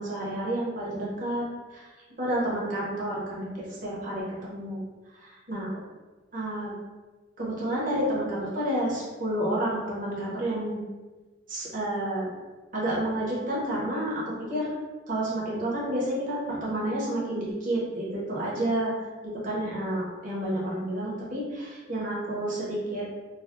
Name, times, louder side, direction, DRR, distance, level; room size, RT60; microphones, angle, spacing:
voice 1, 0.0-1.5 1.7-1.8 2.2-4.8 5.1-5.7 6.3-6.8 7.4-10.8 11.5-12.3 12.7-14.7 15.1-18.9 19.2-23.0, right 1 dB, 40° right, -6 dB, 0.9 m, -30 dB
3.2 x 2.2 x 2.6 m, 1.3 s
head